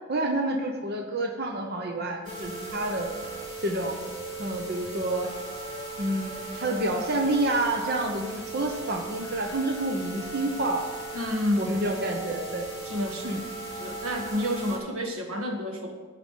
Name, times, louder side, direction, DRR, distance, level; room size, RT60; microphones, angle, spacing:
voice 1, 0.1-3.1 3.6-4.0 4.4-5.3 6.0-10.8 11.6-12.7 13.2-13.4, right 1 dB, 50° right, 2 dB, 1.0 m, -28 dB
sound 1, 2.2-14.8, right 3 dB, 35° right, 3.0 m, -38 dB
voice 2, 11.1-11.8 12.8-13.4 13.8-16.0, equal, 90° right, 4 dB, 1.6 m, -30 dB
13.5 x 5.0 x 7.5 m, 1.4 s
head